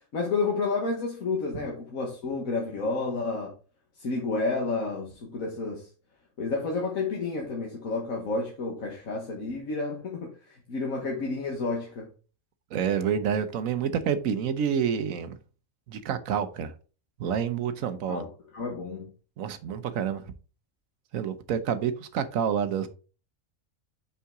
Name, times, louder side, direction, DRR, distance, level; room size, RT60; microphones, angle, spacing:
voice 1, 0.1-3.5 4.0-5.9 6.4-12.1 18.1-19.1, left 3 dB, 90° left, 1.8 m, -30 dB
voice 2, 12.7-15.4 15.9-16.7 17.2-18.2 19.4-20.2 21.1-22.9, right 8 dB, 85° right, 1.1 m, -28 dB
5.6 x 5.6 x 3.6 m
omnidirectional pair, 1.4 m